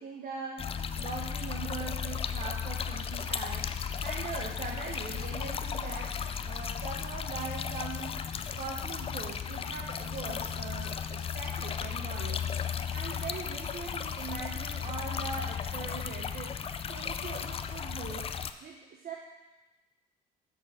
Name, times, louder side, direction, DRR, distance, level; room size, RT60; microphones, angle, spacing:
voice 1, 0.0-6.2 6.4-8.2 8.5-16.5 16.9-18.4 18.6-19.1, right 4 dB, 50° right, 0 dB, 1.0 m, -41 dB
sound 1, 0.6-18.5, left 7 dB, 30° left, 0.4 m, -35 dB
sound 2, 3.3-13.2, left 6 dB, 50° left, 1.1 m, -57 dB
7.4 x 4.2 x 5.7 m, 1.1 s
supercardioid pair, 70°, 19 cm